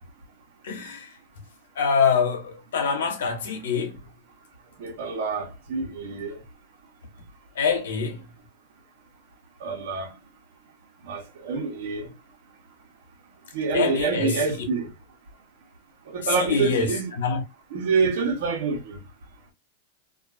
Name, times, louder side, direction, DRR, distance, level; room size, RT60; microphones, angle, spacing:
voice 1, 0.6-1.1 1.8-4.0 7.6-8.2 13.7-14.4 16.4-16.9 17.2-17.4, left 6 dB, 80° left, 1.0 m, -24 dB
voice 2, 4.8-6.4 9.6-10.1 11.0-12.1 13.5-14.9 16.1-17.1 17.7-19.0, right 4 dB, 65° right, 1.0 m, -27 dB
2.5 x 2.4 x 2.5 m
hypercardioid pair, 120°, 0 cm